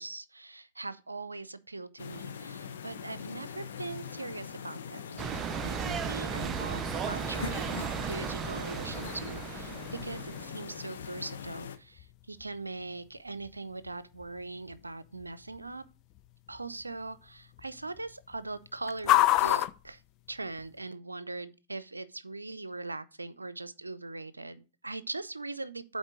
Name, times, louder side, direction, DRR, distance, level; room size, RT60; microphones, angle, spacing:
voice 1, 0.0-5.2 5.5-7.8 8.1-15.8 16.5-20.0 20.3-26.0, right 3 dB, 90° right, 0.5 m, -41 dB
sound 1, 2.0-11.8, left 7 dB, 70° left, 0.9 m, -42 dB
sound 2, 5.2-10.6, right 7 dB, 25° right, 0.6 m, -36 dB
sound 3, 6.1-20.9, left 15 dB, 40° left, 0.5 m, -35 dB
8.0 x 4.1 x 6.2 m
figure-of-eight pair, 100°, 0 cm